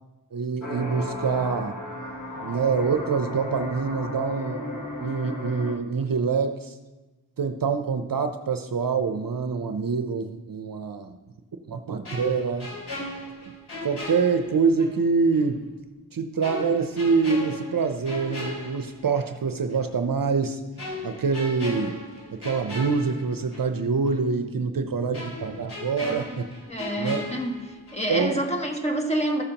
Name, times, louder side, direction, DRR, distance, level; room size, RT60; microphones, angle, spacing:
voice 1, 0.3-1.8 2.4-6.7 7.4-11.2 11.7-12.7 13.8-15.7 16.1-20.6 21.0-22.0 22.3-26.5 27.0-27.2 28.1-28.4, right 5 dB, 55° right, 7 dB, 0.7 m, -25 dB
sound 1, 0.6-5.8, left 1 dB, 45° left, 1.5 m, -35 dB
sound 2, 12.0-15.0 15.3-15.5 16.4-19.4 19.7-19.9 20.8-23.8 24.1-24.2 25.1-28.2 28.4-28.7, left 1 dB, 70° left, 3.2 m, -37 dB
voice 2, 26.7-29.4, right 1 dB, 15° left, 1 dB, 1.5 m, -28 dB
14.5 x 6.6 x 2.9 m, 1.1 s
cardioid pair, 50°, 41 cm